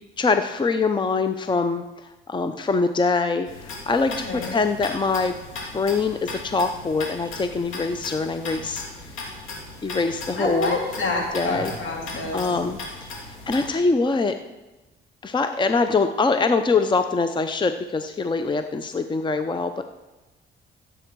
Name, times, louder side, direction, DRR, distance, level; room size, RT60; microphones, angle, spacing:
voice 1, 0.0-1.8 2.3-5.4 5.7-8.8 9.8-10.7 11.3-11.7 12.3-14.3 15.2-19.8, left 4 dB, 25° left, 8 dB, 0.6 m, -23 dB
sound 1, 3.5-13.7, left 2 dB, 90° left, 2.8 m, -37 dB
voice 2, 4.2-4.6 10.4-12.4, left 2 dB, 75° left, 0 dB, 3.2 m, -27 dB
15.0 x 7.6 x 4.7 m, 1.1 s
cardioid pair, 90°, 20 cm